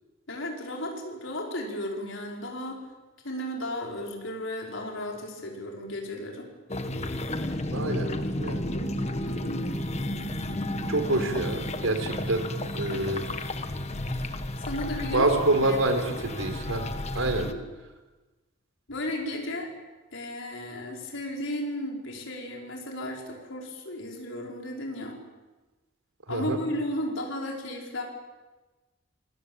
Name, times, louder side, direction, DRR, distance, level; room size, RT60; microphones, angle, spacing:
voice 1, 0.3-2.8 3.2-6.4 9.2-9.7 12.9-13.1 14.7-15.3 15.7-15.8 17.2-17.6 18.9-19.7 20.1-25.2 26.3-28.0, left 1 dB, 70° left, 0 dB, 5.3 m, -34 dB
sound 1, 6.7-17.5, left 1 dB, 35° left, 1.5 m, -32 dB
voice 2, 7.7-8.1 8.4-8.7 10.9-12.5 12.7-13.3 15.1-16.9 17.1-17.5 26.3-26.6, right 2 dB, 80° right, 7 dB, 4.0 m, -26 dB
26.0 x 20.5 x 8.9 m, 1.2 s
head